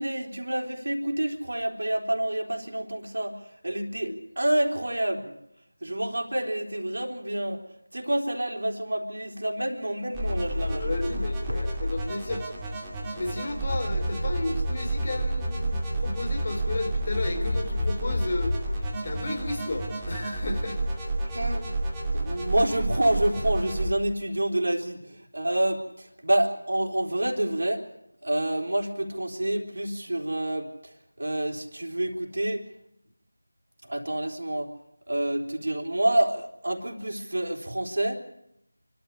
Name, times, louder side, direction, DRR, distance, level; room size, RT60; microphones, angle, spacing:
voice 1, 0.0-5.3 5.8-10.9 11.5-11.6 21.2-21.7 22.1-27.8 28.2-32.7 33.8-34.7 35.1-38.3, right 1 dB, 65° right, 1 dB, 3.7 m, -28 dB
sound 1, 10.1-23.9, right 1 dB, 10° right, 2.5 m, -30 dB
voice 2, 10.6-12.4 13.1-18.5 19.0-20.8, left 2 dB, 40° left, 5 dB, 3.7 m, -33 dB
27.0 x 13.0 x 9.9 m, 0.80 s
figure-of-eight pair, 170°, 0 cm